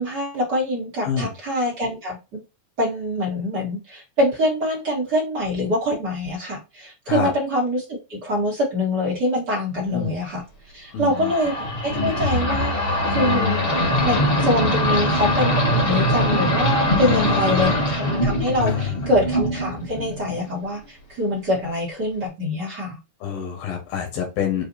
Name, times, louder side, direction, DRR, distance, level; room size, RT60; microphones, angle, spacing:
voice 1, 0.0-2.4 2.8-10.4 10.7-11.5 11.8-13.6 14.0-23.0, left 1 dB, 45° right, -4 dB, 1.4 m, -24 dB
voice 2, 1.0-1.3 7.1-7.3 9.9-10.2 10.9-11.3 17.0-17.8 18.6-19.0 23.2-24.6, left 8 dB, 90° left, 2 dB, 3.1 m, -27 dB
sound 1, 11.1-20.5, left 1 dB, 65° left, 0.5 m, -22 dB
7.2 x 2.5 x 2.7 m, 0.27 s
omnidirectional pair, 4.1 m